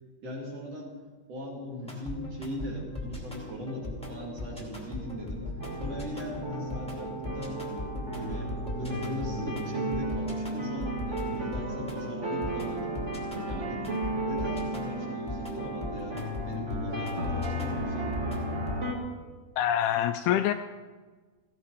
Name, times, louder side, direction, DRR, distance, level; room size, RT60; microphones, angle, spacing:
voice 1, 0.2-0.9 1.3-5.5 5.7-7.6 8.1-13.0 13.4-13.8 14.2-18.1, left 1 dB, 40° right, -2 dB, 3.6 m, -39 dB
sound 1, 1.8-18.8, left 2 dB, ahead, 1.6 m, -39 dB
sound 2, 5.6-18.9, right 1 dB, 25° right, 1.7 m, -34 dB
voice 2, 19.6-20.5, left 11 dB, 80° left, 8 dB, 2.3 m, -25 dB
16.0 x 15.5 x 5.0 m, 1.4 s
omnidirectional pair, 4.7 m